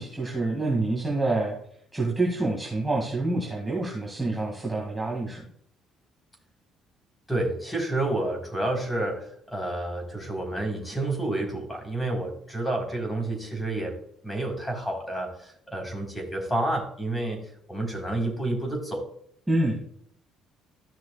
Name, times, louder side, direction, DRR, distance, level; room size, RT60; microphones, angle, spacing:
voice 1, 0.0-1.6 1.9-5.5 19.5-19.9, right 2 dB, 10° right, -3 dB, 2.1 m, -27 dB
voice 2, 7.3-14.0 14.2-17.4 17.7-19.0, right 2 dB, 10° left, 1 dB, 3.8 m, -29 dB
14.5 x 6.0 x 2.3 m, 0.66 s
cardioid pair, 100°, 0 cm